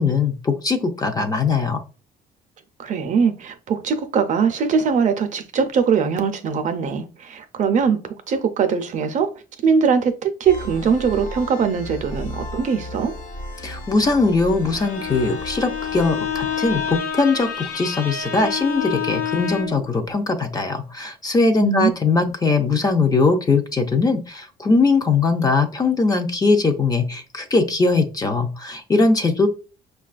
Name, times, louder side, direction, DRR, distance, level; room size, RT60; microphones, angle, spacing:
voice 1, 0.0-1.8 13.6-29.5, left 3 dB, 20° left, 0.5 m, -20 dB
voice 2, 2.8-9.3 9.6-13.1 21.6-21.9, right 6 dB, 50° right, 0.5 m, -21 dB
sound 1, 10.4-17.0, left 1 dB, 50° left, 1.2 m, -35 dB
Bowed string instrument, 14.6-19.9, left 8 dB, 85° left, 1.0 m, -28 dB
5.2 x 2.3 x 2.4 m
cardioid pair, 110°, 17 cm